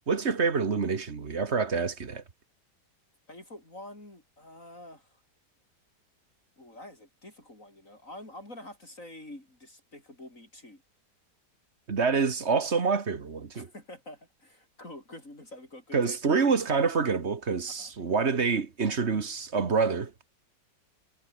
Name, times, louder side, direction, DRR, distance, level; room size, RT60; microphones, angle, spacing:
voice 1, 0.1-2.2 11.9-13.7 15.9-20.3, right 5 dB, 40° right, 1.8 m, -27 dB
voice 2, 3.3-5.2 6.6-10.8 13.5-16.4 17.7-17.9, left 1 dB, 50° left, 7.5 m, -47 dB
omnidirectional pair, 1.8 m